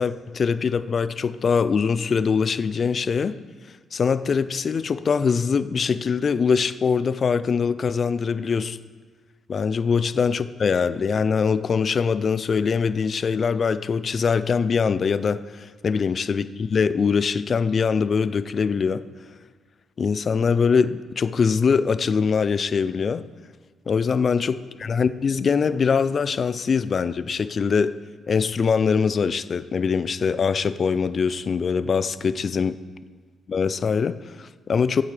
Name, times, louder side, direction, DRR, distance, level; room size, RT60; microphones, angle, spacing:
voice 1, 0.0-3.3 3.9-8.8 9.5-19.0 20.0-23.3 23.9-27.9 28.3-32.7 33.5-35.0, left 5 dB, 45° left, 14 dB, 0.4 m, -23 dB
15.0 x 8.5 x 3.3 m, 1.5 s
cardioid pair, 90°, 0 cm